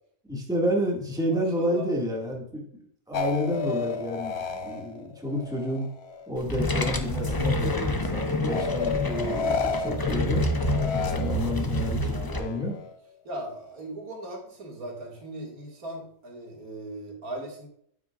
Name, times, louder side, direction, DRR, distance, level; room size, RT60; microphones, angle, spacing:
voice 1, 0.3-2.8 3.1-5.9 6.3-10.4 11.1-12.8, equal, 5° right, -2 dB, 1.9 m, -30 dB
voice 2, 1.3-2.2 4.5-4.8 7.2-7.4 11.1-11.3 12.1-12.7 13.2-17.7, right 1 dB, 85° right, -1 dB, 2.6 m, -39 dB
sound 1, 3.1-6.3 6.7-7.5 8.5-11.7 12.2-13.0, left 5 dB, 55° left, 0.8 m, -33 dB
sound 2, 6.4-12.4, left 1 dB, 30° left, 0.4 m, -28 dB
9.3 x 8.5 x 2.4 m, 0.65 s
omnidirectional pair, 1.5 m